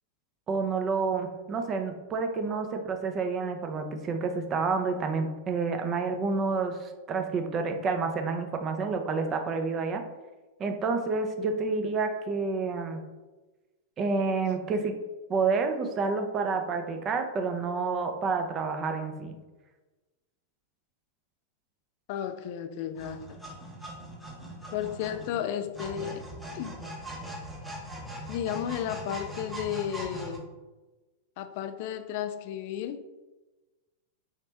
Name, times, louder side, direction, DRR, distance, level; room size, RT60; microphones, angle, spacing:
voice 1, 0.5-10.0 10.6-13.0 14.0-15.0 15.3-19.4, right 4 dB, 30° right, 5 dB, 0.5 m, -29 dB
voice 2, 22.1-23.4 24.7-26.3 26.5-26.8 28.3-30.5 31.4-33.0, left 10 dB, 55° left, 9 dB, 0.3 m, -33 dB
sound 1, 22.9-30.4, right 1 dB, ahead, 0.9 m, -41 dB
3.2 x 2.8 x 3.3 m, 1.2 s
hypercardioid pair, 110°, 0 cm